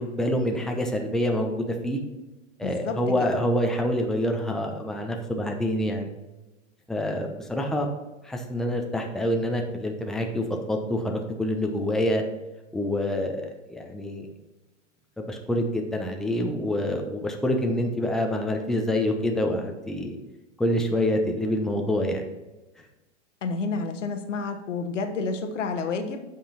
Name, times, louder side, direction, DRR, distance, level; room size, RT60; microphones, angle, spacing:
voice 1, 0.0-2.0 2.6-6.1 6.9-7.9 8.2-12.2 12.7-14.3 15.2-20.2 20.6-22.3, left 1 dB, ahead, 2 dB, 0.9 m, -26 dB
voice 2, 2.6-3.4 23.4-26.2, left 4 dB, 85° left, 6 dB, 1.2 m, -30 dB
8.7 x 5.5 x 4.2 m, 1.1 s
hypercardioid pair, 115°, 36 cm